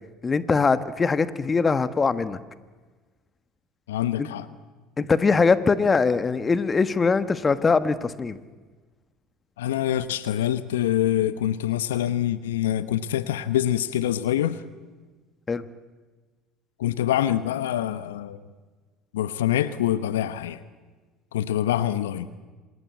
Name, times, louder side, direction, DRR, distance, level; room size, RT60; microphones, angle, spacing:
voice 1, 0.2-2.4 4.2-4.3 5.0-8.4 15.5-15.6, left 4 dB, 25° left, 13 dB, 1.4 m, -22 dB
voice 2, 3.9-4.5 9.6-14.6 16.8-18.4 19.1-20.6 21.3-22.3, left 12 dB, 75° left, 14 dB, 1.0 m, -25 dB
27.0 x 20.5 x 8.5 m, 1.3 s
hypercardioid pair, 65°, 0 cm